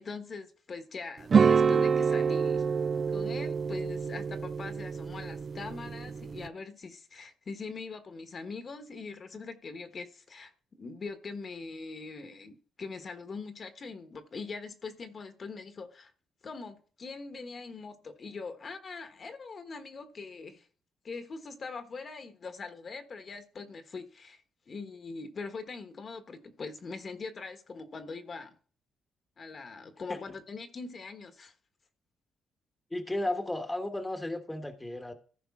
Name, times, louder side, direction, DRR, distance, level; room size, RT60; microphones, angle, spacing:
voice 1, 0.0-2.6 3.1-16.1 16.4-20.7 21.0-28.6 29.4-31.5, left 4 dB, 45° left, 1.2 m, -42 dB
sound 1, 1.3-6.5, right 6 dB, 40° right, 0.4 m, -27 dB
voice 2, 32.9-35.1, left 1 dB, 10° left, 1.2 m, -34 dB
14.5 x 5.2 x 3.6 m
cardioid pair, 90°, 0 cm